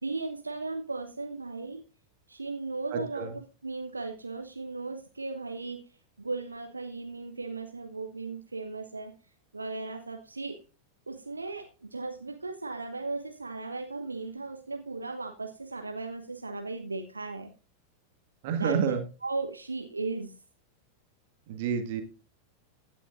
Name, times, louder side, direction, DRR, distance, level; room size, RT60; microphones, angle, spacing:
voice 1, 0.0-1.8 2.3-3.3 3.6-5.8 6.2-9.1 9.5-10.6 11.1-17.5 18.6-20.3, right 3 dB, 80° right, 6 dB, 1.0 m, -36 dB
voice 2, 2.9-3.3 18.4-19.0 21.5-22.0, right 6 dB, 50° right, 6 dB, 1.8 m, -29 dB
16.0 x 9.0 x 2.5 m, 0.33 s
figure-of-eight pair, 90°, 0 cm